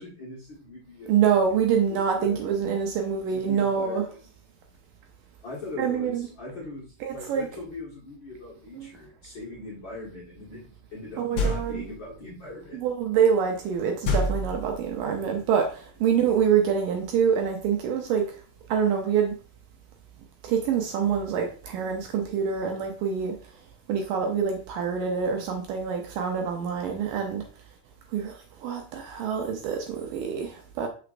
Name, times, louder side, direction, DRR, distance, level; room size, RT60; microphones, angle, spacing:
voice 1, 0.0-1.1 1.6-2.4 3.3-4.2 5.4-10.6 10.9-12.8, left 2 dB, 45° left, 1.6 m, -40 dB
voice 2, 1.1-4.0 5.8-6.3 7.0-7.5 8.7-8.9 11.2-11.9 12.7-18.4 18.7-19.4 20.4-23.4 23.9-27.5 28.1-30.9, right 7 dB, 80° right, 2.1 m, -26 dB
sound 1, 11.4-12.0 14.0-15.1, left 1 dB, 60° left, 1.7 m, -27 dB
6.4 x 5.9 x 2.5 m
omnidirectional pair, 4.3 m